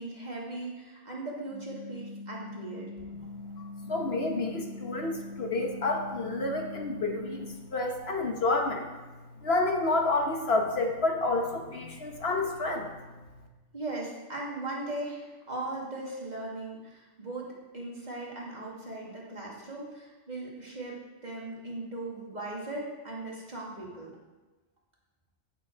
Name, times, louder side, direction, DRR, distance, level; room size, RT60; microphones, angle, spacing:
voice 1, 0.0-2.9 13.7-24.1, right 2 dB, 35° right, -4 dB, 2.4 m, -38 dB
sound 1, 1.5-7.5, left 2 dB, 75° left, 2.4 m, -43 dB
voice 2, 3.6-8.8 9.4-12.9, left 2 dB, 60° left, 2 dB, 1.4 m, -29 dB
14.0 x 7.0 x 4.5 m, 1.2 s
omnidirectional pair, 1.2 m